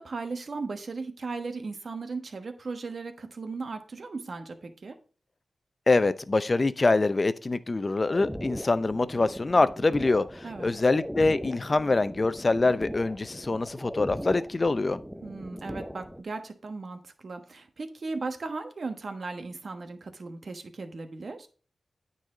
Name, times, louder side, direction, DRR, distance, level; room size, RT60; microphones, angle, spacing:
voice 1, 0.0-5.0 10.4-10.7 15.2-21.5, right 3 dB, 60° right, 7 dB, 1.2 m, -37 dB
voice 2, 5.9-15.0, left 3 dB, 40° left, 14 dB, 0.6 m, -25 dB
sound 1, 8.1-16.2, equal, ahead, 0.5 m, -39 dB
9.2 x 4.1 x 4.9 m, 0.39 s
cardioid pair, 60°, 0 cm